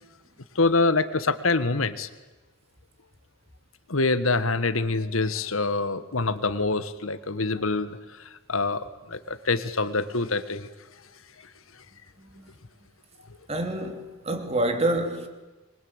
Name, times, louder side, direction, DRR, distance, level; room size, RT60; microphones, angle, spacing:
voice 1, 0.6-2.1 3.9-10.7, left 3 dB, 90° left, 1.7 m, -25 dB
voice 2, 12.2-12.5 13.5-15.3, right 1 dB, 30° right, 3.2 m, -27 dB
26.0 x 23.0 x 8.9 m
head